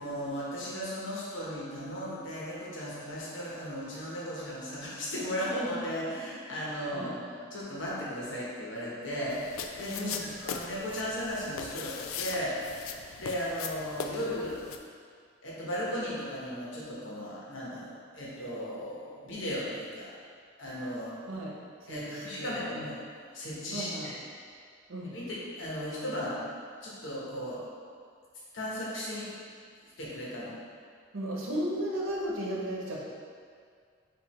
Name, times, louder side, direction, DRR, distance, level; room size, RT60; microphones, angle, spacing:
voice 1, 0.0-10.1 10.4-12.6 13.2-14.6 15.4-20.1 20.6-21.2 21.9-24.1 25.1-26.4 26.8-27.6 28.5-29.4 30.0-30.5, equal, 70° left, -6 dB, 1.1 m, -36 dB
sound 1, 9.3-14.8, left 6 dB, 85° left, 0.3 m, -40 dB
voice 2, 21.3-22.9 23.7-24.1 24.9-25.1 31.1-33.1, right 1 dB, 85° right, -4 dB, 0.9 m, -35 dB
4.7 x 2.6 x 4.2 m, 2.1 s
head